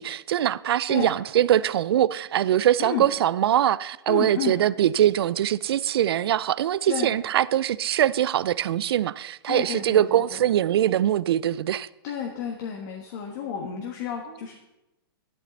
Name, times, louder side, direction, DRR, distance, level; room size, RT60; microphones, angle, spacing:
voice 1, 0.0-11.9, right 11 dB, 80° right, 0.4 m, -22 dB
voice 2, 4.1-4.6 6.9-7.1 9.5-10.2 12.0-14.5, left 7 dB, 50° left, 1.5 m, -31 dB
11.5 x 11.0 x 4.0 m
hypercardioid pair, 150°, 13 cm